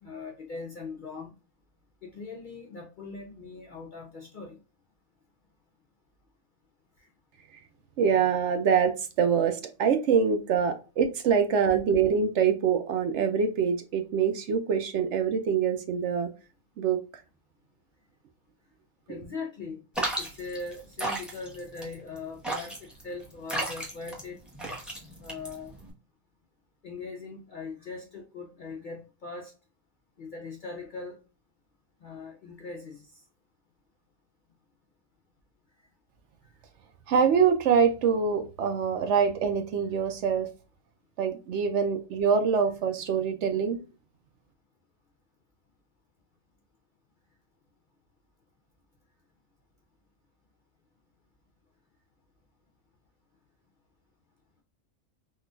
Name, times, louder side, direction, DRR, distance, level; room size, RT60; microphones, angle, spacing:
voice 1, 0.0-1.3 2.0-4.6 7.0-7.1 19.1-19.8 20.2-24.4 25.2-25.7 26.8-29.5 30.2-31.2 32.0-33.2 36.4-36.5, left 4 dB, 55° left, 1 dB, 0.5 m, -40 dB
voice 2, 8.0-16.3 16.8-17.0 37.1-40.5 41.2-43.8, right 6 dB, 70° right, 7 dB, 0.8 m, -25 dB
sound 1, 19.9-25.9, right 1 dB, ahead, 0.7 m, -34 dB
3.7 x 2.4 x 2.3 m, 0.32 s
omnidirectional pair, 1.4 m